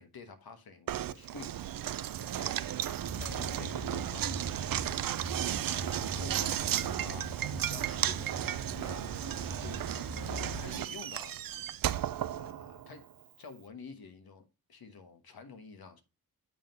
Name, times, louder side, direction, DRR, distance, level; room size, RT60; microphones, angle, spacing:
voice 1, 0.0-4.5 5.7-7.3 7.6-8.4 8.7-11.4 12.3-13.0 13.4-16.0, left 4 dB, 75° left, 1.3 m, -50 dB
Knock, 0.9-13.0, right 11 dB, 65° right, 0.5 m, -34 dB
sound 1, 3.1-10.7, left 1 dB, ahead, 1.3 m, -43 dB
8.4 x 3.7 x 5.3 m
wide cardioid pair, 110°, 37 cm